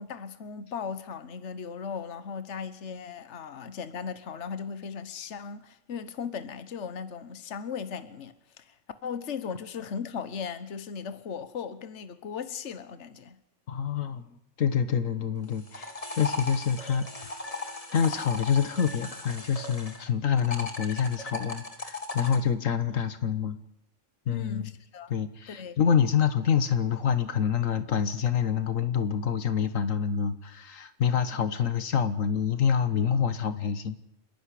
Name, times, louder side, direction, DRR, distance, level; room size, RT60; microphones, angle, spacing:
voice 1, 0.0-8.8 9.0-13.4 24.3-25.1 25.5-25.8, left 6 dB, 60° left, 12 dB, 1.4 m, -37 dB
voice 2, 13.7-14.3 14.6-17.3 17.9-23.6 24.3-24.6 25.1-34.0, left 7 dB, 80° left, 11 dB, 1.6 m, -27 dB
sound 1, 15.4-20.0 20.4-22.4, left 2 dB, 25° left, 2.1 m, -37 dB
28.5 x 11.0 x 10.0 m, 0.81 s
omnidirectional pair, 1.3 m